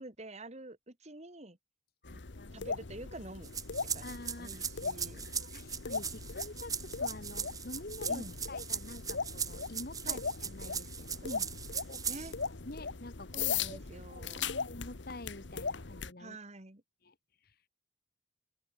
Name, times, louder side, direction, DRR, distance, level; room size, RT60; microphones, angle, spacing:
voice 1, 0.0-1.6 2.1-2.2 2.5-3.5 3.9-5.3 8.1-8.4 10.0-10.2 11.2-11.5 12.1-12.4 13.3-14.5 16.2-16.8, right 1 dB, 35° right, 2.5 m, -47 dB
voice 2, 2.0-2.6 4.0-4.7 5.2-11.2 11.9-12.0 12.7-16.4 17.0-17.2, left 2 dB, 55° left, 2.0 m, -48 dB
sound 1, 2.1-16.1, left 5 dB, 75° left, 1.2 m, -39 dB
sound 2, 3.4-12.5, right 7 dB, 20° right, 0.8 m, -39 dB
open air
head